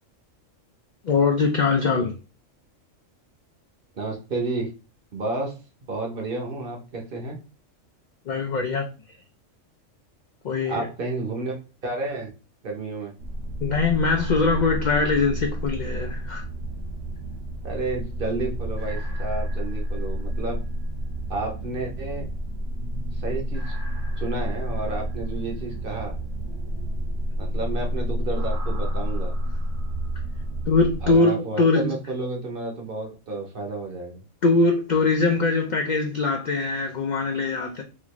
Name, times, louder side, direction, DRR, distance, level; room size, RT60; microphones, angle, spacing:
voice 1, 1.0-2.1 8.3-8.8 10.4-10.8 13.6-16.4 30.7-31.9 34.4-37.8, left 3 dB, 75° left, 0.4 m, -22 dB
voice 2, 3.9-4.7 5.1-7.4 10.6-11.6 11.8-12.3 12.6-13.1 17.6-20.6 21.3-22.3 23.1-23.7 24.2-26.2 27.4-29.4 31.0-34.2, right 3 dB, 50° right, 0.9 m, -31 dB
sound 1, 13.2-31.1, equal, 75° right, 1.2 m, -30 dB
4.2 x 2.4 x 3.0 m
omnidirectional pair, 1.3 m